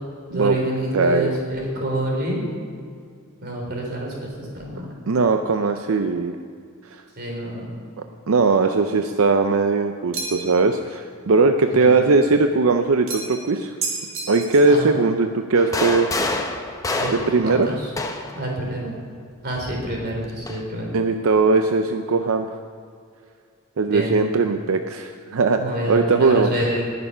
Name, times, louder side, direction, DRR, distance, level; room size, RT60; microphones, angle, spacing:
voice 1, 0.3-2.4 3.4-4.9 7.2-7.7 11.6-11.9 14.7-15.0 16.9-17.1 17.4-17.9 18.3-18.9 19.4-20.9 23.9-24.1 25.6-26.9, right 1 dB, 50° right, -1 dB, 3.6 m, -27 dB
voice 2, 0.9-1.4 5.1-6.4 8.3-13.7 14.3-16.1 17.1-17.7 20.9-22.5 23.8-25.6 25.9-26.5, right 3 dB, 90° right, 6 dB, 0.6 m, -19 dB
sound 1, 10.1-10.6 13.1-13.5 13.8-14.8, right 4 dB, 70° right, 2.0 m, -30 dB
sound 2, 15.6-18.5 19.6-20.6, left 2 dB, 15° left, 0.8 m, -27 dB
19.0 x 6.9 x 5.6 m, 2.2 s
head